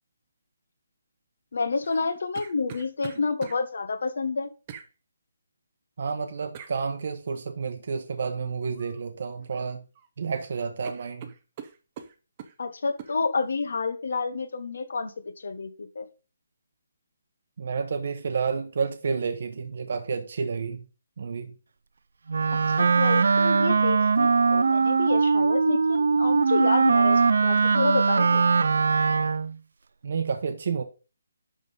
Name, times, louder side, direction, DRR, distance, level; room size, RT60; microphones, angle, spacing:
voice 1, 1.5-4.5 12.6-15.1 15.4-16.1 22.8-28.4, left 4 dB, 60° left, 1.5 m, -29 dB
sound 1, 1.8-3.6 4.7-4.9 6.5-6.8 8.7-9.0 9.4-10.1 10.4-10.5 10.8-12.6 13.0-13.2, right 8 dB, 20° right, 0.7 m, -43 dB
voice 2, 6.0-9.8 10.2-11.3 17.6-20.8 21.2-21.5 30.0-30.8, right 5 dB, 45° right, 1.0 m, -30 dB
Wind instrument woodwind instrument, 22.3-29.5, right 5 dB, 65° right, 0.4 m, -21 dB
11.0 x 3.9 x 5.3 m
hypercardioid pair, 175°, 0 cm